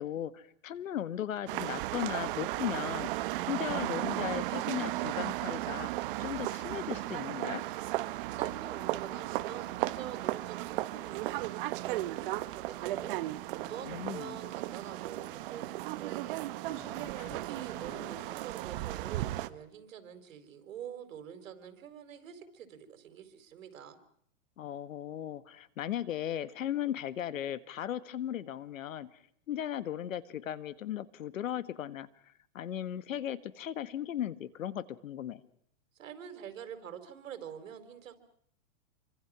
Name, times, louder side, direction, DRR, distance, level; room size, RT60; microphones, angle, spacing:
voice 1, 0.0-3.1 3.5-5.9 6.2-7.6 13.8-14.4 16.6-18.2 24.6-29.2 29.5-35.4, left 11 dB, 90° left, 15 dB, 1.7 m, -37 dB
sound 1, 1.5-19.5, right 17 dB, 40° right, 1.0 m, -35 dB
voice 2, 8.3-13.2 13.5-16.4 17.3-24.0 36.0-38.2, right 9 dB, 80° right, 9 dB, 4.1 m, -46 dB
27.5 x 24.5 x 6.2 m, 0.65 s
supercardioid pair, 155°, 39 cm